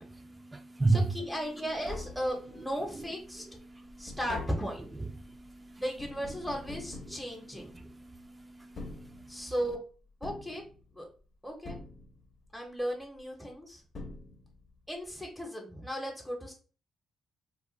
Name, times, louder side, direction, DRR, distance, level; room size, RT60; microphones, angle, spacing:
voice 1, 0.2-1.1 3.7-4.2 5.2-5.8 7.1-7.2 7.5-9.5, right 3 dB, 15° right, 0.3 m, -34 dB
voice 2, 0.9-3.4 4.0-4.8 5.8-7.8 9.3-9.8 10.2-10.6 10.9-11.1 11.4-11.8 12.5-13.8 14.9-16.5, equal, 5° left, 0.7 m, -36 dB
Tap, 1.4-1.5 1.7-2.8 3.2-8.0 8.6-9.7 10.2-11.2 11.6-12.5 13.5-13.6 13.9-14.8 15.0-15.1, left 3 dB, 50° left, 0.8 m, -45 dB
2.3 x 2.2 x 3.8 m
cardioid pair, 90°, 0 cm